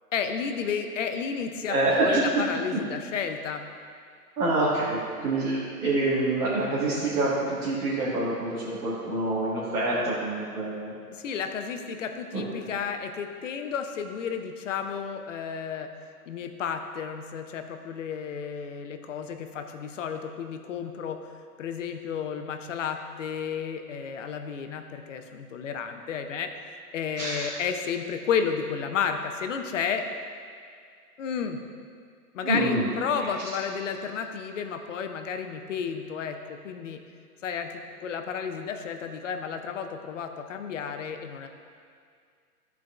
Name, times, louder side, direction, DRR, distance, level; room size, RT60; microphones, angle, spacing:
voice 1, 0.1-3.6 11.1-15.9 16.3-21.2 21.6-26.5 26.9-30.0 31.2-31.6 32.3-37.0 37.4-41.5, left 6 dB, 50° left, 6 dB, 0.6 m, -32 dB
voice 2, 1.7-2.2 4.4-10.9 12.3-12.4 27.2-27.5 32.4-32.9 33.2-33.3, right 2 dB, 70° right, -9 dB, 1.7 m, -26 dB
12.0 x 4.6 x 2.4 m, 2.2 s
hypercardioid pair, 145°, 47 cm